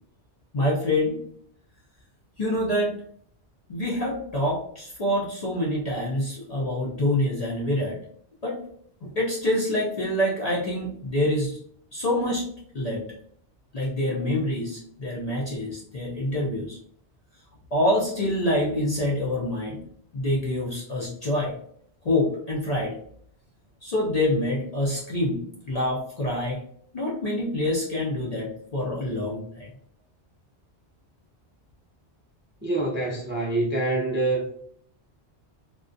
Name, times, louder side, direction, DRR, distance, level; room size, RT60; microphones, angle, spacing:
voice 1, 0.5-1.2 2.4-2.9 3.7-8.0 8.4-8.6 9.0-11.6 11.9-12.4 12.7-13.0 13.7-16.8 17.7-19.8 20.1-21.6 22.0-22.9 23.8-26.6 26.9-29.7, left 1 dB, 50° left, -5 dB, 0.5 m, -26 dB
voice 2, 32.6-34.5, right 2 dB, 15° right, -6 dB, 0.4 m, -25 dB
2.3 x 2.1 x 2.5 m, 0.63 s
omnidirectional pair, 1.1 m